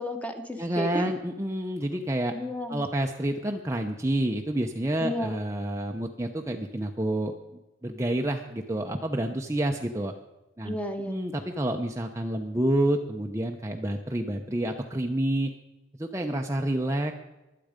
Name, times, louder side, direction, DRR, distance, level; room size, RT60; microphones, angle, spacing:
voice 1, 0.0-1.1 2.3-2.8 5.0-5.4 10.6-11.2, left 1 dB, 5° left, 6 dB, 1.3 m, -32 dB
voice 2, 0.6-2.3 2.7-7.3 7.8-10.1 10.6-10.8 11.1-15.5 16.0-17.1, right 1 dB, 15° right, 3 dB, 0.8 m, -28 dB
22.5 x 8.5 x 5.1 m, 1.0 s
head